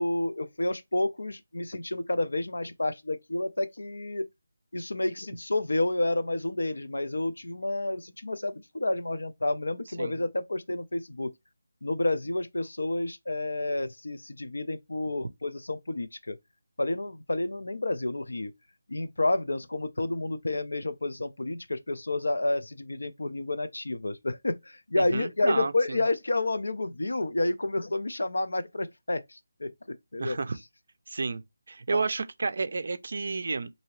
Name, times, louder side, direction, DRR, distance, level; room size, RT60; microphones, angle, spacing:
voice 1, 0.0-4.3 4.7-11.3 11.8-16.4 16.8-18.5 18.9-30.4 31.9-32.0, left 2 dB, 90° left, 0.5 m, -30 dB
voice 2, 25.0-26.0 30.2-30.6 31.1-31.4 31.7-33.7, right 4 dB, 55° right, 0.4 m, -31 dB
2.9 x 2.6 x 3.0 m
figure-of-eight pair, 170°, 0 cm